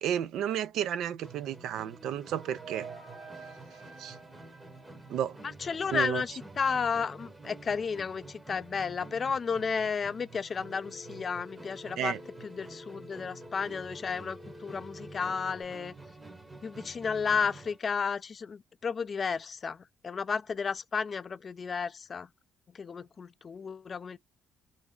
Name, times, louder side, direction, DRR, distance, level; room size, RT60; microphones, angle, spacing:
voice 1, 0.0-2.9 4.0-4.1 5.1-5.3 5.9-6.2 12.0-12.2, right 10 dB, 85° right, 0.3 m, -32 dB
Musical instrument, 1.2-17.9, right 3 dB, 15° right, 0.7 m, -49 dB
sound 1, 1.8-5.8, right 5 dB, 45° right, 1.0 m, -49 dB
voice 2, 5.4-12.1 12.4-15.9 16.6-22.3 22.8-24.2, left 5 dB, 40° left, 0.3 m, -33 dB
Telephone, 10.6-15.6, left 2 dB, 15° left, 0.8 m, -49 dB
2.9 x 2.6 x 3.5 m
cardioid pair, 90°, 0 cm